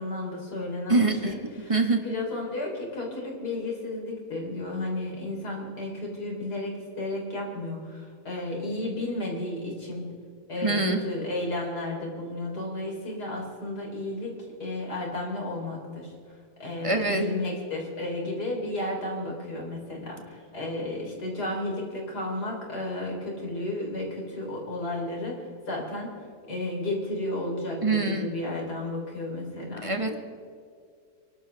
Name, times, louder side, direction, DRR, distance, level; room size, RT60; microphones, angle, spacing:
voice 1, 0.0-10.1 10.5-16.1 16.6-26.2 26.5-30.2, left 1 dB, 75° left, -2 dB, 4.5 m, -33 dB
voice 2, 0.9-1.3 1.7-2.0 10.6-11.0 16.8-17.2 27.8-28.3 29.8-30.1, right 3 dB, 20° right, 4 dB, 1.6 m, -24 dB
28.0 x 12.5 x 3.5 m, 2.3 s
omnidirectional pair, 1.7 m